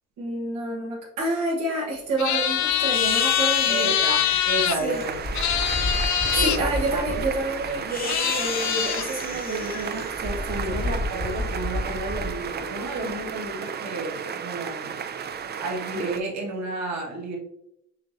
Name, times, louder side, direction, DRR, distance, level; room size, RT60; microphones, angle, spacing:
voice 1, 0.2-3.9 4.8-5.0 6.3-10.7, right 2 dB, 85° right, -5 dB, 1.3 m, -29 dB
sound 1, 2.2-4.8 5.3-6.6 7.6-7.7 8.0-9.1, left 10 dB, 70° left, 0.6 m, -24 dB
sound 2, 2.9-13.2, left 2 dB, 30° left, 1.0 m, -32 dB
voice 2, 3.6-5.2 6.3-7.2 10.6-14.9 15.6-17.4, right 2 dB, 65° right, -1 dB, 1.6 m, -31 dB
sound 3, 4.9-16.2, right 7 dB, 35° right, 0.4 m, -34 dB
6.5 x 3.0 x 2.6 m, 0.80 s
cardioid pair, 90°, 30 cm